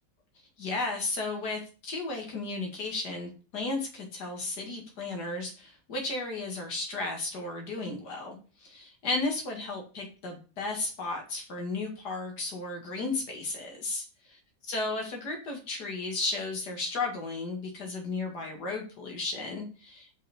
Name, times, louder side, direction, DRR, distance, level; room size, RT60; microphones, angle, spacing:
voice 1, 0.6-14.4 14.7-20.2, left 3 dB, 65° left, 1 dB, 2.3 m, -34 dB
7.1 x 5.4 x 3.5 m, 0.36 s
omnidirectional pair, 1.9 m